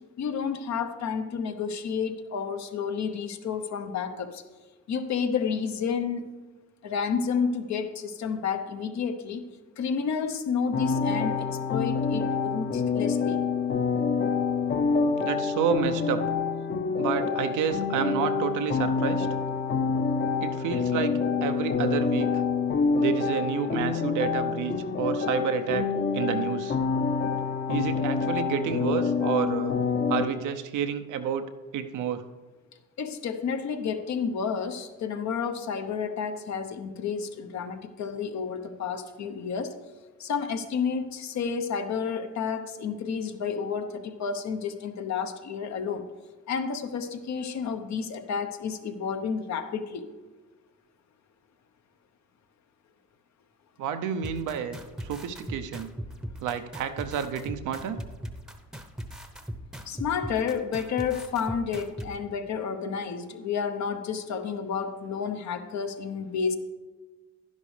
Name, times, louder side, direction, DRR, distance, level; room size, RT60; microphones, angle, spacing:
voice 1, 0.2-4.4 4.9-6.2 6.8-9.4 9.8-13.4 33.0-39.7 40.2-46.0 46.5-50.1 59.9-66.6, left 6 dB, 65° left, 7 dB, 0.9 m, -30 dB
sound 1, 10.7-30.3, left 5 dB, 35° left, 0.7 m, -27 dB
voice 2, 15.2-16.2 17.0-19.3 20.4-21.1 21.4-22.3 23.0-25.9 26.1-26.8 27.7-29.8 30.1-31.4 31.7-32.2 53.8-55.9 56.4-58.0, right 8 dB, 85° right, 8 dB, 0.7 m, -29 dB
sound 2, 54.2-62.1, equal, ahead, 0.8 m, -38 dB
11.0 x 10.5 x 3.3 m, 1.3 s
cardioid pair, 90°, 30 cm